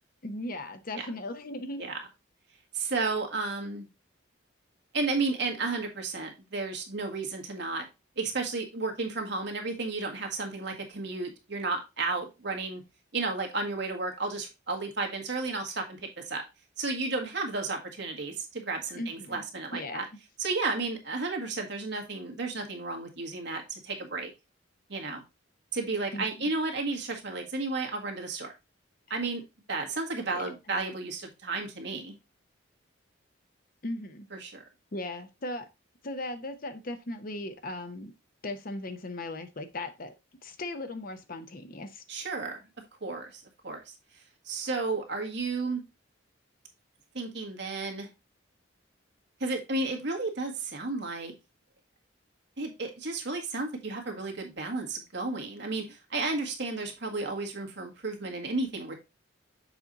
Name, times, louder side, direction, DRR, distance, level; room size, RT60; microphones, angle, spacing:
voice 1, 0.2-1.9 18.9-19.5 19.7-20.0 26.1-26.5 29.1-29.2 30.3-30.4 33.8-34.3 34.9-35.7 36.0-38.1 38.4-40.1 40.4-42.0, left 2 dB, 45° left, 9 dB, 0.7 m, -37 dB
voice 2, 2.7-3.8 4.9-7.9 8.2-12.8 13.1-16.0 16.3-16.4 16.8-20.0 20.4-24.3 24.9-25.2 25.7-28.5 29.1-29.4 29.7-32.1 34.3-34.6 42.1-42.6 43.0-43.8 44.5-45.8 47.1-48.1 49.4-51.3 52.6-58.9, right 3 dB, 60° right, 2 dB, 1.6 m, -33 dB
6.9 x 4.3 x 3.9 m, 0.25 s
head